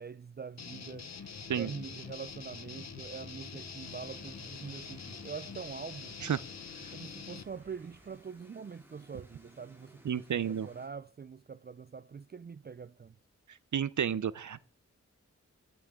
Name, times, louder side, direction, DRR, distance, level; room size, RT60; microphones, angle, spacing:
voice 1, 0.0-6.2 6.9-13.2, right 6 dB, 35° right, 0.4 m, -44 dB
sound 1, 0.6-7.4, left 6 dB, 60° left, 0.8 m, -45 dB
sound 2, 1.2-8.2, right 2 dB, 50° right, 4.0 m, -58 dB
sound 3, 3.8-10.9, right 1 dB, 5° right, 2.6 m, -60 dB
voice 2, 10.0-10.7 13.7-14.6, right 8 dB, 80° right, 0.7 m, -31 dB
11.5 x 9.0 x 3.6 m
wide cardioid pair, 50°, 29 cm